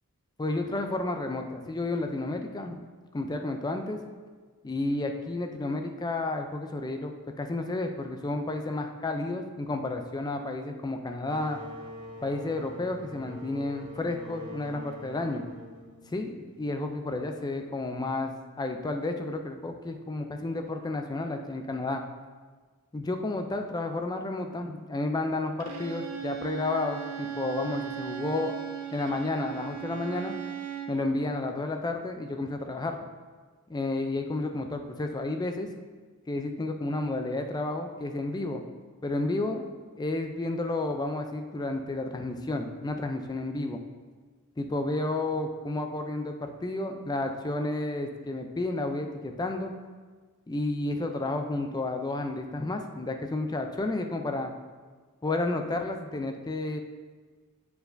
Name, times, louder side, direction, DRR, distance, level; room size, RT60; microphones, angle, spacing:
voice 1, 0.4-2.9 3.1-4.0 4.6-11.6 12.2-15.5 16.1-22.0 22.9-28.5 28.9-30.4 30.9-33.0 33.7-35.7 36.3-38.6 39.0-39.7 40.0-43.8 44.6-49.7 50.5-54.5 55.2-56.8, left 2 dB, 20° left, 5 dB, 0.4 m, -31 dB
sound 1, 11.3-16.7, equal, 20° right, 0.7 m, -44 dB
Bowed string instrument, 25.6-31.0, right 8 dB, 85° right, 0.7 m, -37 dB
8.7 x 4.6 x 2.6 m, 1.4 s
head